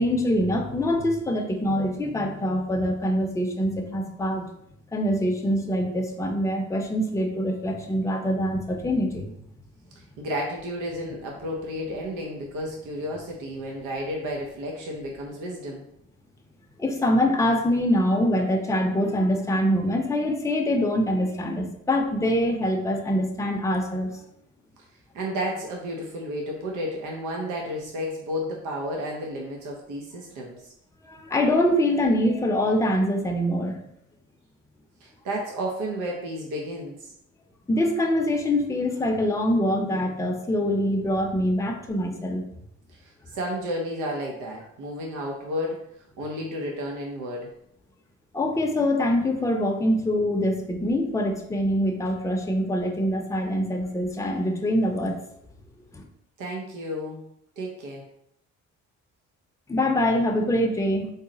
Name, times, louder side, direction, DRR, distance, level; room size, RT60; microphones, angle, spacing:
voice 1, 0.0-4.5 4.9-9.3 16.8-24.1 31.0-33.8 37.7-42.4 48.3-55.1 55.9-56.0 59.7-61.1, left 1 dB, 10° left, 2 dB, 0.5 m, -24 dB
voice 2, 10.0-15.8 25.1-30.7 35.0-37.1 42.9-45.8 46.2-47.5 56.4-57.3 57.6-58.0, equal, 90° right, 0 dB, 0.7 m, -32 dB
3.9 x 2.0 x 3.8 m, 0.75 s
cardioid pair, 90°, 30 cm